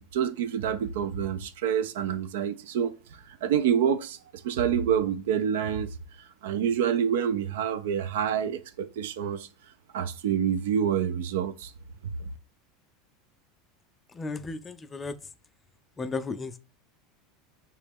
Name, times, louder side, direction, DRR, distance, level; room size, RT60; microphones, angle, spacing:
voice 1, 0.0-2.9 3.4-4.2 4.4-6.0 6.4-9.5 9.9-11.7, right 8 dB, 70° right, 0.3 m, -27 dB
voice 2, 14.2-15.1 16.0-16.6, left 3 dB, 20° left, 0.4 m, -34 dB
3.0 x 2.8 x 3.5 m
hypercardioid pair, 85°, 0 cm